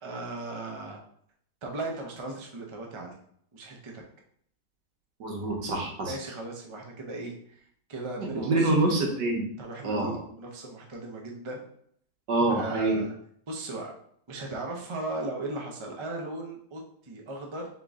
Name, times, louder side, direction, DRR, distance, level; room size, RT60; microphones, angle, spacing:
voice 1, 0.0-1.0 1.6-3.1 3.5-4.0 6.0-9.1 9.6-11.7 12.5-13.1 13.5-13.9 14.3-17.7, right 2 dB, 50° right, 0 dB, 0.3 m, -37 dB
voice 2, 5.2-6.1 8.2-9.5 9.8-10.2 12.3-13.0, right 2 dB, 85° right, 0 dB, 1.7 m, -26 dB
3.9 x 3.7 x 3.6 m, 0.64 s
omnidirectional pair, 1.8 m